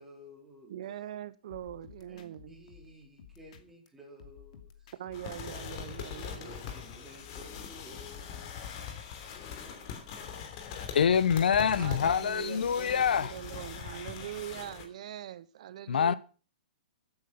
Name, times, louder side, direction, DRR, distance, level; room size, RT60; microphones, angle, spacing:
voice 1, 0.0-0.8 2.1-4.9 6.1-9.1 9.6-10.1, equal, 5° right, 4.2 m, -53 dB
voice 2, 0.7-2.6 5.0-6.5 11.7-16.1, right 11 dB, 45° right, 0.7 m, -42 dB
sound 1, 1.5-3.9 4.2-6.6, left 8 dB, 50° left, 2.5 m, -55 dB
sound 2, 5.1-14.8, left 7 dB, 35° left, 3.2 m, -42 dB
voice 3, 10.9-13.4 15.9-16.1, left 7 dB, 85° left, 1.1 m, -25 dB
16.0 x 9.5 x 5.9 m
hypercardioid pair, 170°, 5 cm